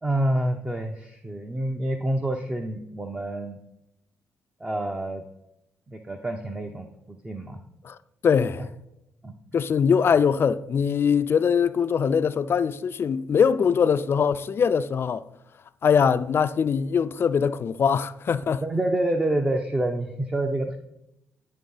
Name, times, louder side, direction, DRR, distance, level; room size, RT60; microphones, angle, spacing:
voice 1, 0.0-3.6 4.6-5.2 5.9-7.6 9.2-9.6 18.6-20.8, right 1 dB, 20° right, 0.8 m, -28 dB
voice 2, 8.2-8.7 9.5-15.3 15.8-18.6, left 6 dB, 50° left, 0.4 m, -22 dB
10.5 x 3.7 x 5.5 m
cardioid pair, 70°, 5 cm